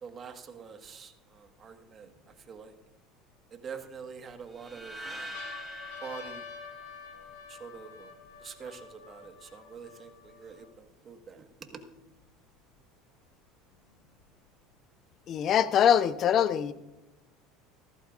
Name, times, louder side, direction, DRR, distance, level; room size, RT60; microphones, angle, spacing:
voice 1, 0.0-2.8 3.5-5.4 6.0-6.5 7.1-8.1 8.4-11.8, right 6 dB, 35° right, 6 dB, 1.5 m, -46 dB
sound 1, 0.8-0.9 1.6-2.9 3.6-4.3 4.8-4.9 5.2-10.8 11.5-11.6 11.8-12.8 13.7-14.7, left 6 dB, 90° left, 1.8 m, -49 dB
sound 2, 4.6-7.7, equal, 15° right, 3.4 m, -44 dB
voice 2, 15.3-16.7, left 9 dB, 45° left, 13 dB, 0.7 m, -23 dB
15.5 x 14.0 x 2.5 m, 0.97 s
supercardioid pair, 120°, 0 cm